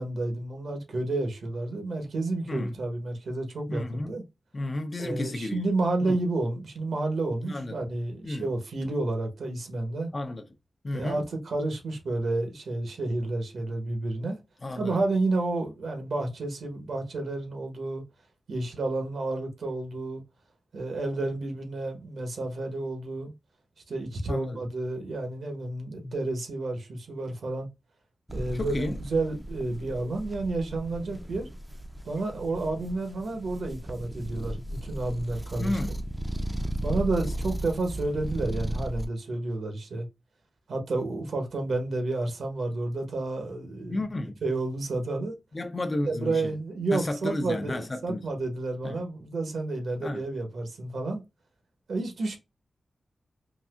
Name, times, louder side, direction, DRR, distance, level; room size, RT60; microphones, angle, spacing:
voice 1, 0.0-4.2 5.0-10.1 10.9-14.4 14.7-18.0 18.5-20.2 20.7-23.3 23.9-27.7 28.3-31.5 32.0-35.7 36.8-40.1 40.7-44.0 44.4-45.3 46.0-51.2 51.9-52.4, right 2 dB, 80° right, 1.0 m, -30 dB
voice 2, 3.7-4.2 4.5-5.7 6.0-6.2 7.5-7.8 8.2-8.5 10.1-10.5 10.8-11.3 14.6-15.0 24.3-24.6 28.5-29.0 35.6-36.0 43.9-44.4 45.5-46.5 46.9-48.2 48.8-49.0 50.0-50.2, left 2 dB, 45° left, 0.7 m, -32 dB
sound 1, 28.3-39.1, equal, 5° right, 0.5 m, -35 dB
4.0 x 2.4 x 2.4 m
cardioid pair, 55°, 0 cm